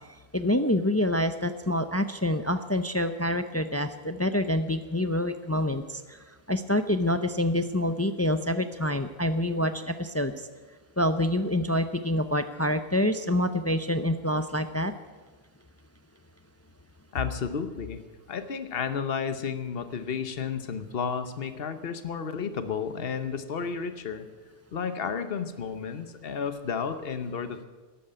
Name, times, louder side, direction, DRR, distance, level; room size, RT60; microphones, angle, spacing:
voice 1, 0.3-6.2 6.5-10.3 11.0-14.9, left 1 dB, 20° left, 10 dB, 0.5 m, -26 dB
voice 2, 17.1-18.0 18.3-24.3 24.7-27.7, left 6 dB, 65° left, 11 dB, 1.2 m, -32 dB
12.5 x 11.5 x 8.8 m, 1.3 s
omnidirectional pair, 1.1 m